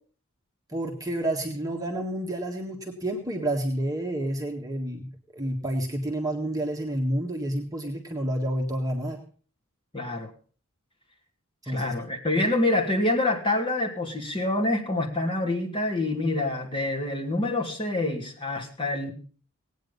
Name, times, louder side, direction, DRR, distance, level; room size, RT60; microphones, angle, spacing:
voice 1, 0.7-9.2 11.6-11.9 12.3-12.4, right 1 dB, 15° right, 1 dB, 1.7 m, -29 dB
voice 2, 9.9-10.3 11.7-19.1, left 2 dB, 25° left, 0 dB, 2.8 m, -26 dB
18.0 x 9.4 x 5.4 m, 0.42 s
head